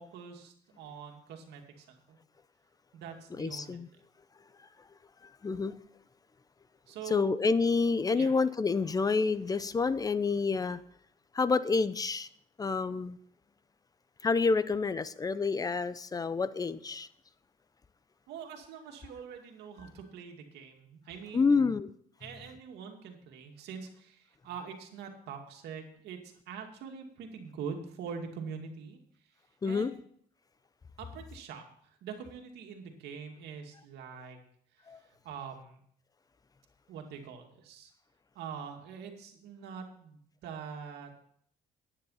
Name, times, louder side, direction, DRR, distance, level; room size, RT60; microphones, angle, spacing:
voice 1, 0.0-2.2 2.9-3.8 6.9-7.5 8.1-8.3 18.3-21.8 22.2-29.0 29.6-30.0 31.0-31.6 32.0-34.4 34.7-35.8 36.9-37.9 38.3-41.1, right 6 dB, 80° right, 3 dB, 2.3 m, -44 dB
voice 2, 3.4-3.9 5.4-5.7 7.1-10.8 11.3-12.3 12.6-13.2 14.2-17.1 21.3-21.9 29.6-29.9 34.9-35.0, left 4 dB, 20° left, 15 dB, 0.6 m, -28 dB
10.5 x 9.9 x 5.7 m, 0.65 s
cardioid pair, 110°, 17 cm